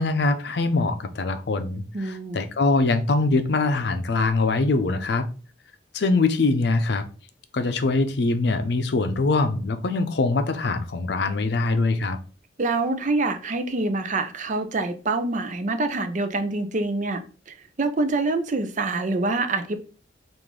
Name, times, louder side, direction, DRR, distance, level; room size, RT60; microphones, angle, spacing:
voice 1, 0.0-5.3 5.9-7.0 7.5-12.2, left 3 dB, 65° left, 0.5 m, -23 dB
voice 2, 1.9-2.4 12.6-19.8, right 3 dB, 45° right, 0.5 m, -26 dB
4.8 x 2.5 x 3.7 m
head